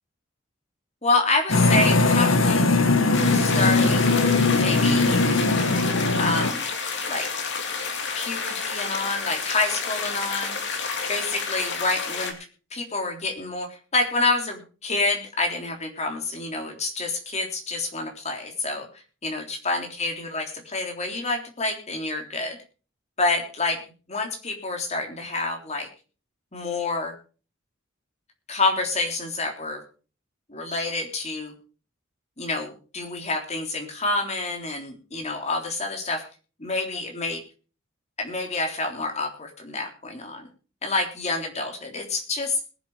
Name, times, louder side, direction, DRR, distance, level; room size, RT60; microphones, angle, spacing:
voice 1, 1.0-2.6 3.3-4.1 4.5-5.2 6.2-6.7 7.1-7.3 8.1-10.6 11.1-12.3 12.7-18.9 19.2-22.6 23.2-23.8 24.1-25.9 26.5-27.1 28.5-29.8 30.5-31.5 32.4-36.2 36.6-37.4 38.2-40.5 40.8-42.6, left 3 dB, 35° left, 2 dB, 3.4 m, -28 dB
sound 1, 1.5-6.5, left 3 dB, 75° left, 1.7 m, -20 dB
sound 2, 3.1-12.3, left 5 dB, 60° left, 2.7 m, -30 dB
21.0 x 7.6 x 4.9 m, 0.37 s
head